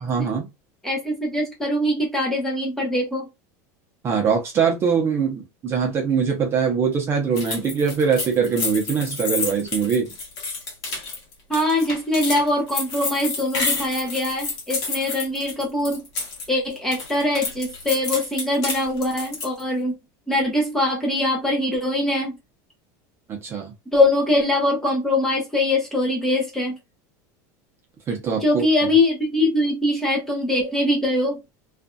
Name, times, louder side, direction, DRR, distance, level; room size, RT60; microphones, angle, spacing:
voice 1, 0.0-0.5 4.0-10.1 23.3-23.7 28.1-28.6, right 6 dB, 25° right, 0.7 m, -22 dB
voice 2, 0.8-3.3 11.5-16.0 16.5-20.0 20.3-22.4 23.9-26.8 28.4-31.4, left 1 dB, 5° left, 0.8 m, -22 dB
sound 1, 7.4-16.5 16.8-19.6, left 4 dB, 45° left, 1.2 m, -29 dB
2.5 x 2.5 x 2.2 m
supercardioid pair, 150°, 9 cm